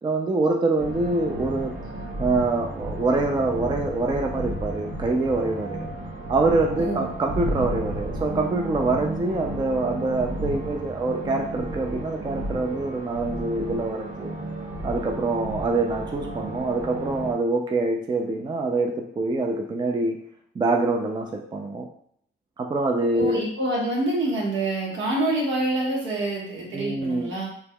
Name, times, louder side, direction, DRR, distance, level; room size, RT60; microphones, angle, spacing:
voice 1, 0.0-1.7 2.2-5.9 6.3-14.3 14.8-20.2 20.6-21.9 22.6-23.4 26.7-27.5, right 2 dB, 20° right, 2 dB, 0.4 m, -25 dB
sound 1, 0.8-17.3, right 1 dB, 40° right, 1.2 m, -33 dB
voice 2, 6.8-7.1 23.1-27.5, right 2 dB, 75° right, -2 dB, 1.2 m, -26 dB
3.4 x 3.0 x 2.2 m, 0.66 s
cardioid pair, 90°, 20 cm